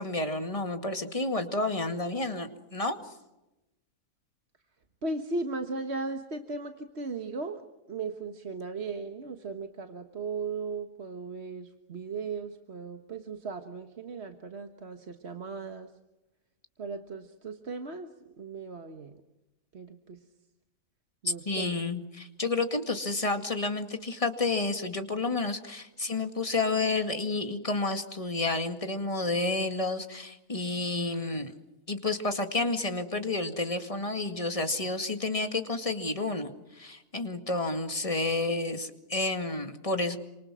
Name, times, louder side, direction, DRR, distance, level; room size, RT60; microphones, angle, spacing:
voice 1, 0.0-3.0 21.2-31.5 31.9-40.2, left 3 dB, 20° left, 6 dB, 2.1 m, -30 dB
voice 2, 5.0-7.6 7.9-15.9 16.8-18.1 18.4-19.2 19.7-20.2 21.2-21.8, right 3 dB, 45° right, 6 dB, 1.6 m, -37 dB
29.0 x 26.5 x 6.3 m, 0.98 s
omnidirectional pair, 1.6 m